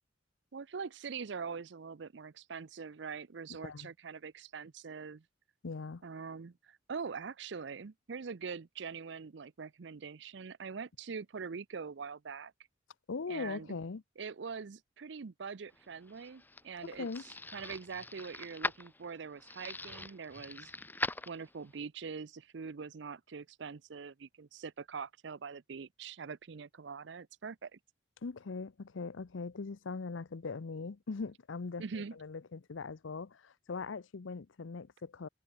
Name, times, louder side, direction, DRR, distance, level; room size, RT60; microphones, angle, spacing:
voice 1, 0.5-5.2 6.0-12.5 13.3-13.7 14.2-17.1 17.5-20.7 21.3-27.8 31.8-32.2, right 5 dB, 65° right, 0.5 m, -43 dB
voice 2, 5.6-6.0 13.1-14.0 16.9-17.2 28.2-35.3, left 4 dB, 85° left, 0.6 m, -40 dB
sound 1, 15.8-21.8, left 2 dB, 10° left, 0.8 m, -42 dB
head